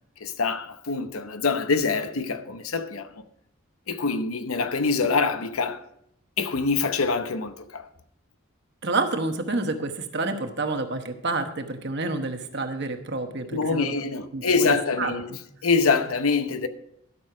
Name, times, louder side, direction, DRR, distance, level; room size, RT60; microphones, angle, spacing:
voice 1, 0.2-3.1 3.9-5.8 6.4-7.9 13.5-15.3 15.6-16.7, left 4 dB, 75° left, 0.8 m, -25 dB
voice 2, 8.8-13.9 14.3-15.4, right 3 dB, 50° right, 1.1 m, -29 dB
12.5 x 6.4 x 5.0 m
head